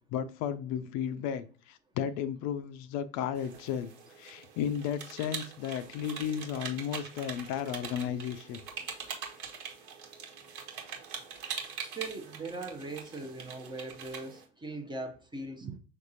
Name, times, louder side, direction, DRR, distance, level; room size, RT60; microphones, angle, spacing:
voice 1, 0.1-3.9 4.2-8.6, left 9 dB, 50° left, 0.5 m, -34 dB
sound 1, 3.4-14.5, right 6 dB, 65° right, 1.4 m, -43 dB
voice 2, 11.8-15.8, right 3 dB, 10° right, 0.6 m, -40 dB
5.7 x 3.5 x 2.6 m
hypercardioid pair, 75°, 37 cm